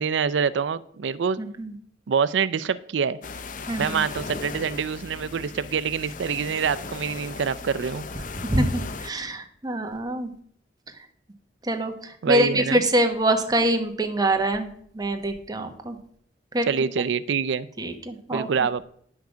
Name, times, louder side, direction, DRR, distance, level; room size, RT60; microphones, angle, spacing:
voice 1, 0.0-1.4 2.1-3.2 3.8-8.0 12.2-12.8 16.7-17.7 18.3-18.8, right 6 dB, 85° right, 15 dB, 0.4 m, -25 dB
voice 2, 1.4-1.8 3.7-4.0 8.4-10.3 11.6-16.0 16.5-16.7 17.8-18.8, right 1 dB, 20° right, 5 dB, 1.2 m, -25 dB
sound 1, 3.2-9.1, left 4 dB, 45° left, 0.7 m, -37 dB
10.0 x 5.9 x 6.2 m, 0.63 s
head